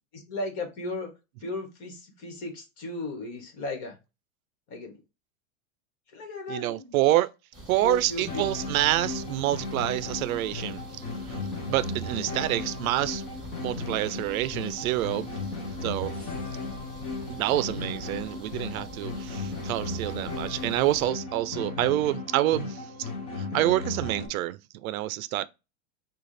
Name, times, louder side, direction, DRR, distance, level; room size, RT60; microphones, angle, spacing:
voice 1, 0.1-1.1 1.4-4.0 4.7-5.0 6.1-7.1 7.8-8.4 12.1-12.6, left 2 dB, 35° left, 1.4 m, -36 dB
voice 2, 6.5-7.3 7.7-11.4 11.7-13.2 13.6-15.3 15.8-16.3 17.3-23.1 23.4-25.5, right 15 dB, 80° right, 0.5 m, -27 dB
sound 1, 7.5-21.1, right 1 dB, 10° right, 2.3 m, -47 dB
sound 2, 8.3-24.3, left 3 dB, 15° left, 0.3 m, -36 dB
6.3 x 2.4 x 3.2 m
supercardioid pair, 170°, 41 cm